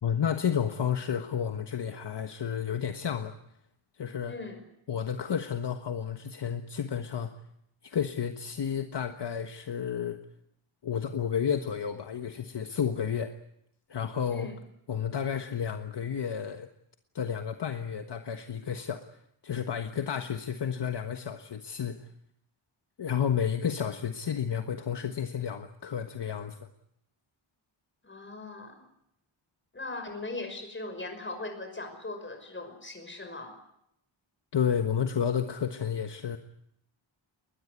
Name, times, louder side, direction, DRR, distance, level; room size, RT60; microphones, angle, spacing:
voice 1, 0.0-3.3 4.0-4.3 4.9-7.3 7.8-10.2 10.8-13.3 13.9-14.5 14.9-16.7 17.1-19.0 19.4-22.1 23.0-26.6 34.5-36.4, left 8 dB, 55° left, 7 dB, 1.4 m, -31 dB
voice 2, 4.3-4.6 14.3-14.6 28.0-28.8 29.7-33.5, left 2 dB, 25° left, 5 dB, 5.7 m, -39 dB
21.0 x 21.0 x 9.7 m, 0.76 s
wide cardioid pair, 140°, 48 cm